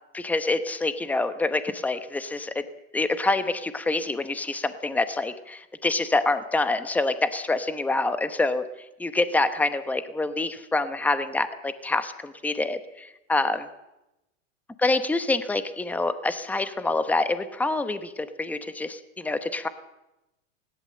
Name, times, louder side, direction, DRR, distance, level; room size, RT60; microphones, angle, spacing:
voice 1, 0.1-2.6 2.9-8.6 9.0-13.7 14.8-19.7, left 2 dB, 5° left, 11 dB, 1.0 m, -26 dB
20.0 x 18.0 x 7.7 m, 0.93 s
supercardioid pair, 145°, 38 cm